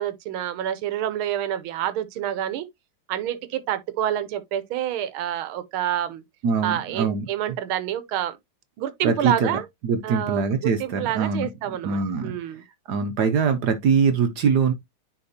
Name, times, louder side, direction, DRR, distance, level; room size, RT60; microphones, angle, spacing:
voice 1, 0.0-2.7 3.1-6.2 6.6-8.4 8.8-9.6 10.0-12.6, right 11 dB, 80° right, 1.6 m, -28 dB
voice 2, 6.4-7.3 9.0-12.3 12.9-14.7, right 5 dB, 65° right, 1.1 m, -23 dB
9.9 x 3.5 x 2.7 m
omnidirectional pair, 2.3 m